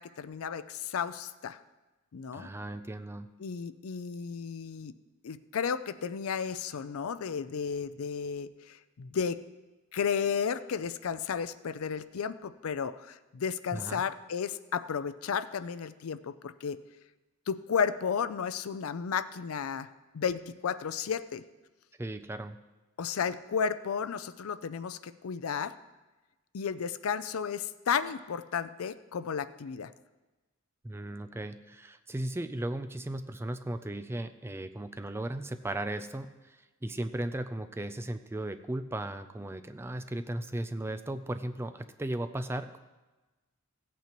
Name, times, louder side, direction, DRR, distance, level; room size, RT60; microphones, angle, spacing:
voice 1, 0.0-1.6 2.1-2.5 3.4-5.0 5.2-9.4 9.9-16.8 17.5-19.9 20.1-21.4 23.0-25.8 26.5-29.9, left 6 dB, 75° left, 14 dB, 0.4 m, -33 dB
voice 2, 2.3-3.3 13.7-14.0 22.0-22.6 30.8-42.8, right 1 dB, 10° right, 9 dB, 0.3 m, -36 dB
16.0 x 8.4 x 3.0 m, 1.2 s
head